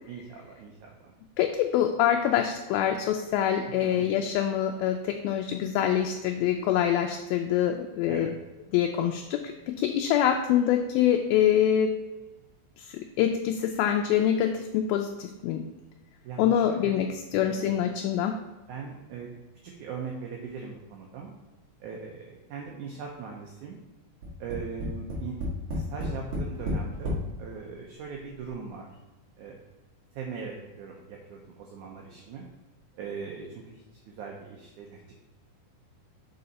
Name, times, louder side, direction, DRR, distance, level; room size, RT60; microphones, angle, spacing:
voice 1, 0.1-1.1 3.8-4.0 8.1-8.4 16.2-17.0 17.3-17.8 18.7-19.4 19.6-21.4 21.8-23.8 24.4-25.3 25.7-28.9 29.4-29.6 30.1-32.5 33.0-35.0, right 6 dB, 80° right, -1 dB, 1.8 m, -40 dB
voice 2, 1.4-8.3 8.7-11.9 12.8-15.6 16.4-18.4, left 10 dB, 80° left, 4 dB, 2.3 m, -25 dB
Tap, 24.2-27.3 28.1-28.2 28.5-28.6, left 1 dB, 60° right, 2.8 m, -31 dB
6.7 x 4.7 x 4.1 m, 1.1 s
omnidirectional pair, 4.4 m